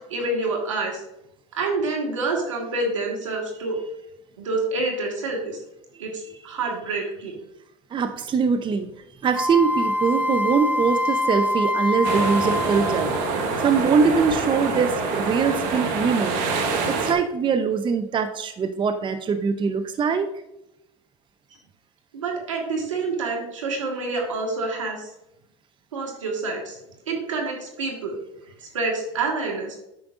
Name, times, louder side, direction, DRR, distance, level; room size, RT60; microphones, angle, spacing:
voice 1, 0.1-1.0 1.5-3.8 4.4-5.6 6.0-7.3 22.1-25.1 25.9-26.8 27.1-28.2 28.6-29.8, right 3 dB, 90° right, 0 dB, 1.7 m, -27 dB
voice 2, 7.9-8.9 9.2-16.4 16.9-20.3, right 5 dB, 30° right, 8 dB, 0.7 m, -23 dB
Wind instrument woodwind instrument, 9.3-13.5, left 1 dB, 10° right, 1.0 m, -25 dB
sound 1, 12.0-17.1, right 4 dB, 60° right, 1.4 m, -26 dB
8.7 x 6.0 x 2.5 m, 0.85 s
hypercardioid pair, 80°, 16 cm